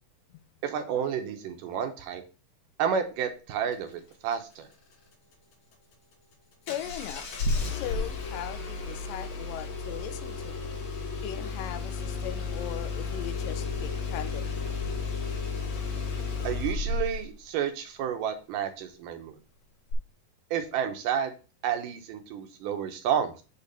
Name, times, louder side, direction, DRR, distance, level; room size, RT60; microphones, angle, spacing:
voice 1, 0.6-2.2 2.8-4.7 16.4-19.4 20.5-21.3 21.6-23.4, right 8 dB, 75° right, 2.4 m, -30 dB
voice 2, 6.7-7.3 7.6-10.6 11.2-14.7, left 12 dB, 85° left, 2.2 m, -39 dB
Engine starting, 6.7-17.3 19.9-20.0, left 4 dB, 60° left, 2.6 m, -33 dB
8.4 x 3.2 x 5.3 m
omnidirectional pair, 4.0 m